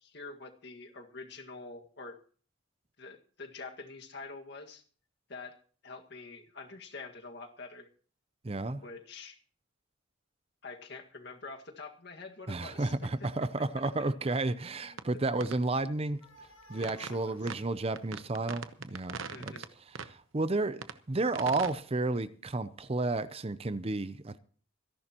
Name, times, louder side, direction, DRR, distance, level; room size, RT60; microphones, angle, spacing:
voice 1, 0.0-2.2 3.0-4.8 5.3-5.6 5.8-7.9 8.8-9.4 10.6-13.3 14.0-14.1 14.8-14.9 16.8-17.4 19.3-19.7, left 3 dB, 55° left, 1.9 m, -46 dB
voice 2, 8.4-8.8 12.5-16.2 16.7-19.6 19.9-24.4, right 2 dB, 30° right, 0.6 m, -32 dB
sound 1, 15.0-15.1 15.4-15.6 16.8-17.2 17.5-17.6 18.0-19.7 20.0-20.1 20.8-21.0 21.3-21.7, right 5 dB, 80° right, 1.0 m, -40 dB
sound 2, 16.2-19.6, left 1 dB, 85° left, 1.8 m, -58 dB
26.0 x 11.0 x 3.0 m
head